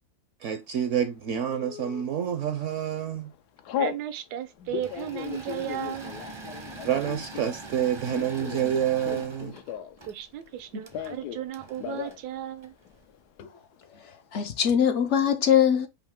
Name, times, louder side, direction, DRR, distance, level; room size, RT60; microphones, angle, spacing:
voice 1, 0.4-3.3 6.8-9.5 10.7-10.8, right 9 dB, 65° right, 0.8 m, -28 dB
Telephone, 1.5-2.0 2.6-2.9 3.1-4.0 4.6-10.1 10.3-11.4 11.7-12.2 12.5-12.6 12.8-13.4, left 10 dB, 85° left, 1.2 m, -36 dB
voice 2, 3.8-6.1 10.1-12.7, right 11 dB, 85° right, 1.2 m, -35 dB
Engine / Mechanisms, 4.7-13.1, right 3 dB, 35° right, 0.5 m, -44 dB
voice 3, 14.0-15.9, left 8 dB, 65° left, 0.7 m, -22 dB
5.4 x 2.7 x 3.5 m
omnidirectional pair, 1.6 m